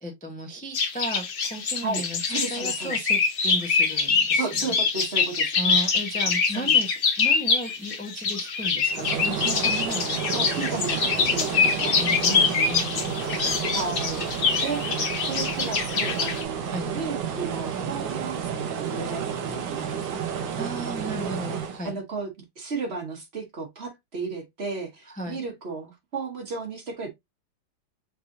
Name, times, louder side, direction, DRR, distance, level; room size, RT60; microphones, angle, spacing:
voice 1, 0.0-4.8 5.6-6.9 7.2-10.9 12.0-13.8 16.6-16.9 20.6-22.0 25.1-25.4, equal, 10° left, 0.4 m, -35 dB
sound 1, 0.7-16.4, left 5 dB, 55° left, 0.6 m, -24 dB
voice 2, 1.8-3.1 4.3-5.8 6.5-6.8 10.3-12.5 13.6-14.2 14.6-14.9 15.2-20.3 21.8-22.3 22.6-27.1, right 4 dB, 40° right, 1.1 m, -34 dB
sound 2, 8.9-21.8, right 7 dB, 90° right, 1.7 m, -31 dB
5.4 x 3.3 x 2.5 m
omnidirectional pair, 2.0 m